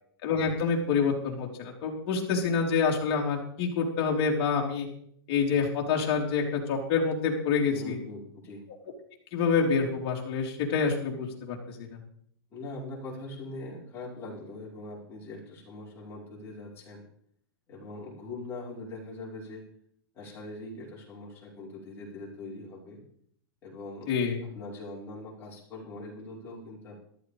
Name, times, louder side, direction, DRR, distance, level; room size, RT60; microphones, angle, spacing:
voice 1, 0.2-4.9 5.3-8.0 9.3-11.6 11.9-12.0 24.1-24.4, left 5 dB, 35° left, -1 dB, 3.7 m, -27 dB
voice 2, 7.7-8.6 12.5-17.0 17.7-19.6 20.1-23.0 23.6-24.1 24.4-27.0, left 2 dB, 20° left, -4 dB, 5.0 m, -42 dB
14.0 x 12.5 x 5.1 m, 0.64 s
hypercardioid pair, 160°, 13 cm